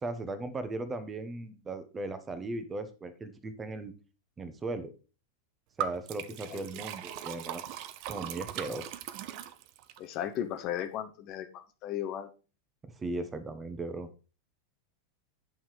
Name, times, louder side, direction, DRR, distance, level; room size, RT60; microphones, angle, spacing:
voice 1, 0.0-3.9 4.4-4.9 5.8-7.6 8.1-8.9 12.8-14.1, right 2 dB, 15° right, 11 dB, 1.2 m, -37 dB
Liquid, 5.8-10.0, right 10 dB, 45° right, 0.7 m, -39 dB
voice 2, 10.0-11.5 11.8-12.3, left 10 dB, 40° left, 8 dB, 0.9 m, -35 dB
8.9 x 5.7 x 4.8 m, 0.34 s
figure-of-eight pair, 90°, 0 cm